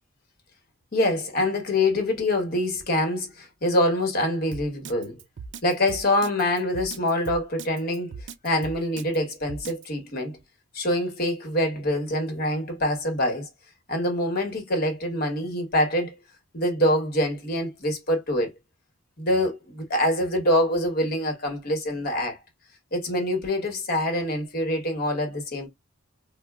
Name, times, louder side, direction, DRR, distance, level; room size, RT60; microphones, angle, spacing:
voice 1, 0.9-5.2 5.6-8.1 8.4-10.4 10.7-13.5 13.9-16.1 16.5-18.5 19.2-22.4 22.9-25.7, left 1 dB, 45° left, 1.2 m, -25 dB
Drum kit, 4.5-9.9, right 5 dB, 55° right, 0.4 m, -39 dB
4.2 x 2.0 x 2.3 m
head